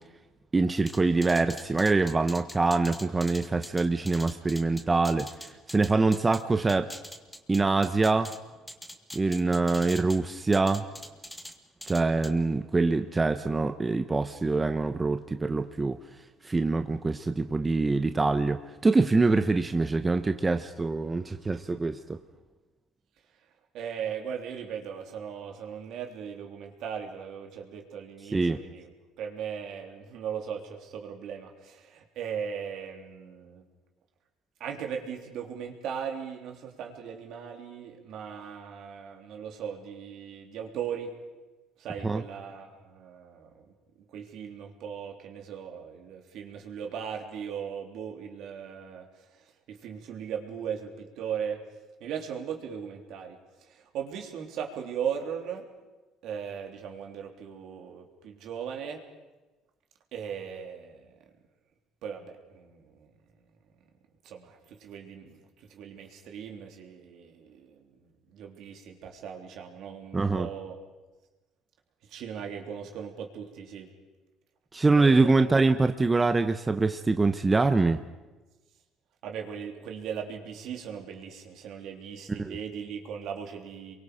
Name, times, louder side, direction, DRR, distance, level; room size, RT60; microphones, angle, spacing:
voice 1, 0.5-5.3 5.7-6.9 7.5-8.3 9.1-10.8 11.9-16.0 16.4-22.2 28.3-28.6 42.0-42.2 70.1-70.5 74.7-78.0 82.4-82.5, right 3 dB, 20° right, 8 dB, 0.9 m, -24 dB
sound 1, 0.9-6.4 6.7-8.4 8.7-10.2 10.5-11.5 11.8-12.3, left 1 dB, 5° left, 1.8 m, -43 dB
voice 2, 23.7-28.9 29.2-33.6 34.6-41.1 41.8-43.7 44.1-49.1 49.4-51.6 52.0-53.4 53.7-55.7 56.2-59.0 60.1-61.1 62.0-63.1 64.2-70.8 72.1-73.9 74.9-75.5 79.2-83.9, right 7 dB, 70° right, 3 dB, 3.3 m, -38 dB
28.0 x 23.0 x 5.1 m, 1.2 s
cardioid pair, 100°, 0 cm